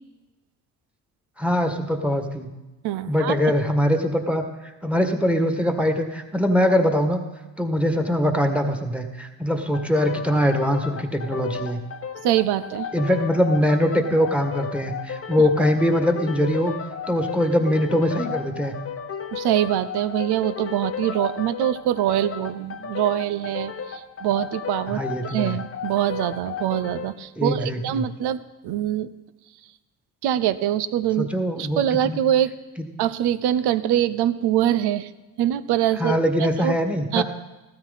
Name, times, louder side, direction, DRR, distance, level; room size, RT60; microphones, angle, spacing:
voice 1, 1.4-2.5 3.1-7.2 7.6-11.8 12.9-16.7 17.1-18.7 24.9-25.5 27.4-28.0 31.2-32.2 36.0-37.2, equal, 5° right, 5 dB, 1.6 m, -22 dB
voice 2, 2.8-3.4 12.2-12.9 15.4-15.5 19.3-29.1 30.2-31.3 31.6-32.5 33.0-35.1 35.4-36.7 37.1-37.2, right 11 dB, 80° right, 14 dB, 0.7 m, -24 dB
sound 1, 9.7-27.2, left 7 dB, 35° left, 0.9 m, -34 dB
15.0 x 13.0 x 4.1 m, 1.1 s
supercardioid pair, 75°, 39 cm